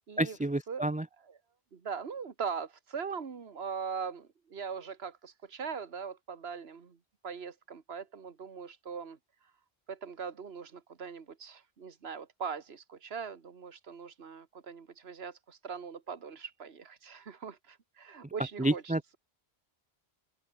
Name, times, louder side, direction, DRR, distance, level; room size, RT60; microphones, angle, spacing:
voice 1, 0.2-1.0 18.6-19.1, right 1 dB, 10° right, 0.5 m, -30 dB
voice 2, 1.7-7.0 7.2-9.2 9.9-19.2, right 6 dB, 70° right, 1.8 m, -41 dB
omnidirectional pair, 1.1 m